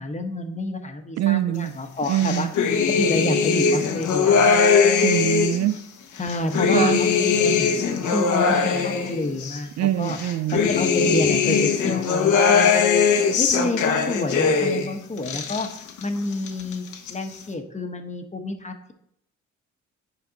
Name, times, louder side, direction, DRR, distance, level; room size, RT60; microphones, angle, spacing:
voice 1, 0.0-2.5 2.9-4.6 6.2-7.7 8.1-10.2 10.5-12.4 12.7-12.8 13.4-15.7 16.0-16.8 17.1-18.9, left 2 dB, 25° left, 5 dB, 1.1 m, -28 dB
voice 2, 1.2-1.7 2.1-2.5 5.0-5.8 6.7-7.0 9.8-10.6, right 12 dB, 65° right, 14 dB, 0.4 m, -23 dB
sound 1, 2.1-5.7 6.2-9.6 10.1-14.9 15.2-16.0 16.3-17.1, left 5 dB, 75° left, 1.2 m, -20 dB
8.8 x 5.2 x 4.0 m, 0.72 s
cardioid pair, 90°, 30 cm